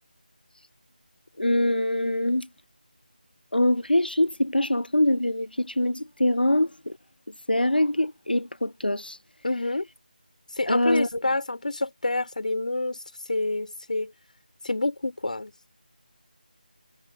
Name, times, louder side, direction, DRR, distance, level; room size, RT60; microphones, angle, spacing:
voice 1, 1.4-2.4 3.5-4.3 4.5-5.5 5.8-5.9 6.2-6.7 7.5-8.4 8.8-9.2 10.7-11.1, left 1 dB, 90° left, 0.5 m, -22 dB
voice 2, 9.4-9.9 10.6-13.0 13.3-14.1 14.6-15.5, left 2 dB, 55° left, 5.1 m, -27 dB
figure-of-eight pair, 165°, 5 cm